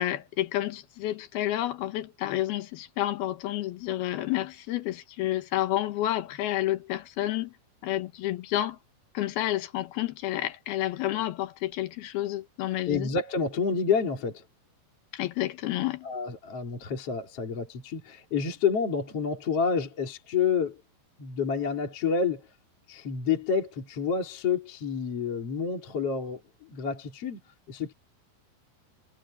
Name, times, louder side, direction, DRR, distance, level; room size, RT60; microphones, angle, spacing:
voice 1, 0.0-7.5 7.8-8.8 9.1-13.1 15.1-16.1, left 14 dB, 70° left, 3.0 m, -30 dB
voice 2, 12.9-14.4 16.0-20.8 21.2-22.5 22.9-27.4 27.7-27.9, left 6 dB, 40° left, 3.6 m, -29 dB
omnidirectional pair, 4.8 m